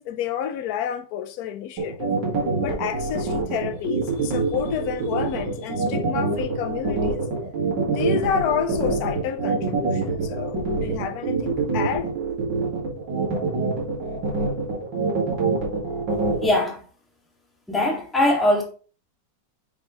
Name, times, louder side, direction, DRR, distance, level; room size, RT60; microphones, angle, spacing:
voice 1, 0.0-2.1 2.6-7.3 7.8-12.1, left 9 dB, 65° left, 1.2 m, -29 dB
sound 1, 1.8-16.5, right 4 dB, 85° right, 2.6 m, -25 dB
voice 2, 16.4-16.8 17.7-18.6, left 1 dB, ahead, 1.8 m, -21 dB
6.4 x 6.0 x 3.0 m
omnidirectional pair, 1.9 m